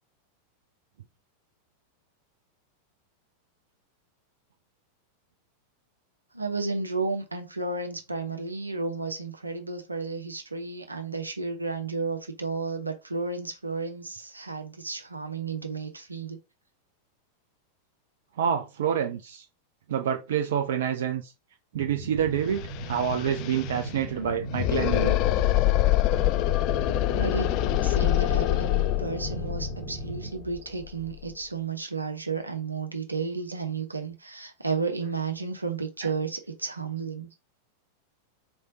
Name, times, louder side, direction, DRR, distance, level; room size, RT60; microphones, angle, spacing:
voice 1, 6.3-16.4 27.2-27.5 27.8-37.3, right 4 dB, 80° right, 0.9 m, -32 dB
voice 2, 18.4-19.5 19.9-21.3 21.7-25.2 36.0-36.1, right 8 dB, 60° right, 0.5 m, -27 dB
sound 1, 21.7-30.3, right 2 dB, 25° right, 1.7 m, -37 dB
sound 2, 22.2-22.3 22.5-31.3, left 16 dB, 40° left, 0.3 m, -26 dB
4.3 x 3.2 x 2.8 m
figure-of-eight pair, 90°, 0 cm